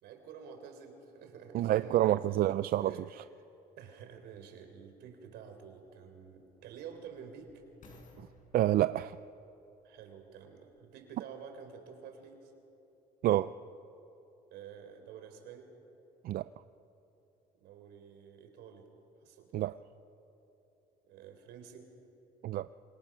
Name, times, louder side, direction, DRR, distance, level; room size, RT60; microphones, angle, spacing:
voice 1, 0.0-2.4 2.8-3.3 3.8-7.6 9.8-12.5 14.5-15.7 17.6-18.9 19.2-19.7 21.0-21.9, right 7 dB, 80° right, 3.8 m, -50 dB
voice 2, 1.5-3.2 8.5-9.2 13.2-13.5 16.2-16.5 19.5-19.8 22.4-22.7, right 13 dB, 60° right, 0.5 m, -28 dB
sound 1, 4.8-4.9 5.6-10.9 11.6-11.7, left 2 dB, 50° left, 7.4 m, -61 dB
26.5 x 26.5 x 6.1 m
cardioid pair, 110°, 17 cm